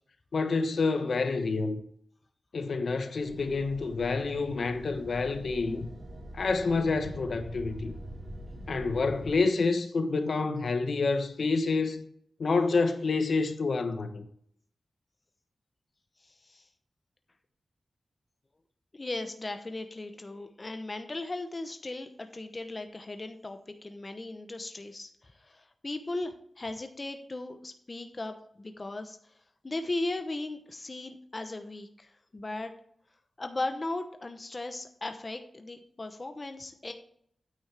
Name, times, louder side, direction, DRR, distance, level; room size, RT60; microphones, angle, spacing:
voice 1, 0.3-1.8 2.5-5.9 6.3-7.9 8.7-12.0 12.4-14.2, left 4 dB, 70° left, 1.1 m, -28 dB
sound 1, 3.2-9.3, right 1 dB, 55° right, 4.4 m, -44 dB
voice 2, 16.2-16.7 18.9-29.3 29.6-32.7 33.4-36.9, left 2 dB, 35° left, 0.8 m, -37 dB
9.4 x 8.8 x 3.4 m
wide cardioid pair, 110°, 0 cm